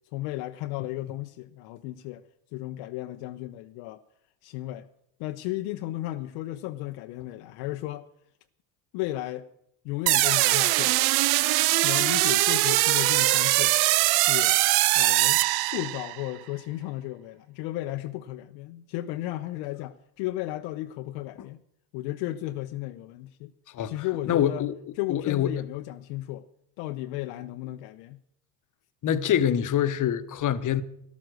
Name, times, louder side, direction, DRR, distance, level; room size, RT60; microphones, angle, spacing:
voice 1, 0.1-2.2 2.5-4.0 4.4-4.9 5.2-8.1 8.9-9.5 9.8-11.0 11.8-13.7 14.1-14.6 14.9-21.6 21.9-23.5 23.8-24.7 25.0-26.5 26.8-28.2, left 16 dB, 60° left, 0.8 m, -34 dB
sound 1, 10.1-16.2, right 19 dB, 55° right, 0.5 m, -22 dB
voice 2, 24.3-24.7 25.1-25.6 29.0-30.8, left 10 dB, 40° left, 1.1 m, -25 dB
13.5 x 11.5 x 6.4 m
hypercardioid pair, 70°, 47 cm